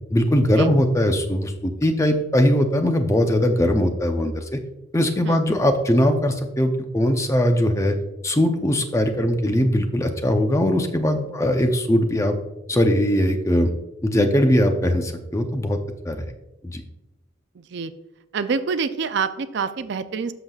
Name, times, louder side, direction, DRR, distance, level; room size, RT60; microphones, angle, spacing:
voice 1, 0.1-4.6 4.9-7.9 8.2-12.4 12.7-13.7 14.0-15.8 16.0-16.3 16.6-16.8, equal, 15° left, 6 dB, 0.6 m, -20 dB
voice 2, 17.5-17.9 18.3-20.3, right 5 dB, 60° right, 10 dB, 0.4 m, -26 dB
13.0 x 5.9 x 2.4 m, 0.96 s
head